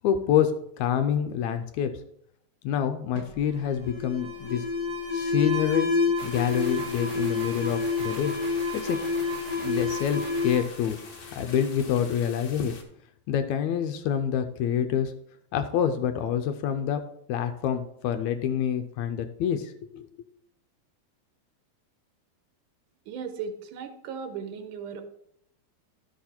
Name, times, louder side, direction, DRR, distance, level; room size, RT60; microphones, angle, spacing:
voice 1, 0.0-0.5 0.8-1.9 2.6-4.7 5.1-8.3 8.7-9.0 9.6-11.0 11.3-12.7 13.3-15.1 15.5-17.0 17.3-20.1, left 9 dB, 75° left, 8 dB, 1.8 m, -27 dB
Alarm, 3.1-11.7, left 4 dB, 35° right, 1.2 m, -29 dB
sound 1, 6.2-12.8, left 4 dB, 55° left, 1.2 m, -45 dB
voice 2, 23.1-25.0, right 6 dB, 80° right, 8 dB, 2.4 m, -36 dB
11.5 x 6.2 x 4.3 m, 0.72 s
omnidirectional pair, 3.6 m